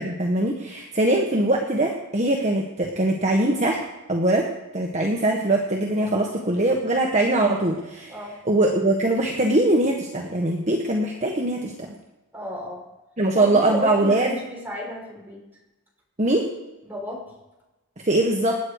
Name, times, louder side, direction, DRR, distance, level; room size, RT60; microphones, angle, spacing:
voice 1, 0.0-3.8 4.1-4.5 4.7-8.1 8.5-11.7 13.2-14.3 16.2-16.5 18.0-18.6, right 1 dB, 30° right, 0 dB, 1.6 m, -22 dB
voice 2, 12.3-12.8 13.4-15.4 16.8-17.3, equal, 10° right, -3 dB, 5.9 m, -33 dB
27.5 x 9.7 x 5.0 m, 1.0 s
head